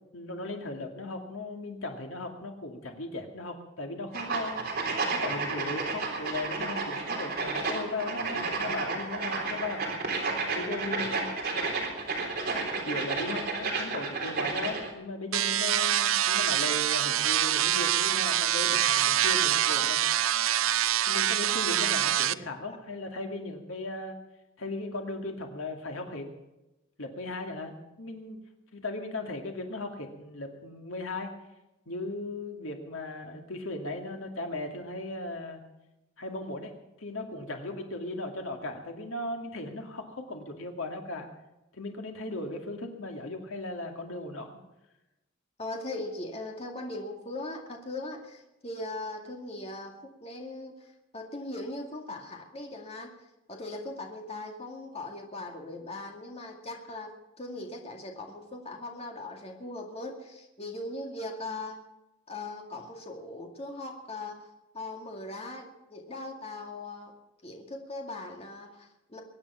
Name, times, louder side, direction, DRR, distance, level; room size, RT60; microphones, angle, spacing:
voice 1, 0.1-4.6 5.1-9.9 10.5-11.6 12.8-20.0 21.1-24.2 24.6-26.3 27.0-28.4 28.7-31.3 31.9-35.6 36.2-36.7 37.0-41.3 41.7-44.6, left 2 dB, 80° left, 3 dB, 2.2 m, -37 dB
sound 1, 4.1-14.9, right 3 dB, 50° right, 3.8 m, -31 dB
sound 2, 15.3-22.3, right 11 dB, 85° right, 0.5 m, -25 dB
voice 2, 45.6-49.9 50.2-50.9 51.1-53.1 53.5-61.8 62.3-64.5 64.7-67.1 67.4-69.2, left 2 dB, 30° left, 2 dB, 2.2 m, -39 dB
22.5 x 9.9 x 5.7 m, 0.96 s
head